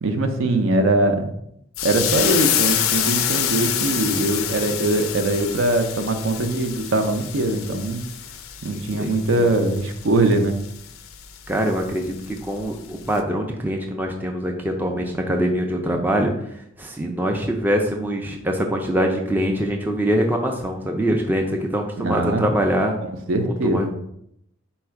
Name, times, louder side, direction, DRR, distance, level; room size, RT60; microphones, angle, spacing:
voice 1, 0.0-1.3 1.8-8.0 8.6-10.5 22.0-22.4 23.0-23.9, right 2 dB, 75° right, 6 dB, 0.5 m, -21 dB
sound 1, 1.8-12.7 13.0-13.2, left 10 dB, 90° left, 0.4 m, -27 dB
voice 2, 8.7-9.5 11.5-16.3 16.8-22.9 23.5-23.9, equal, 10° right, 2 dB, 0.4 m, -24 dB
4.2 x 2.3 x 4.6 m, 0.75 s
head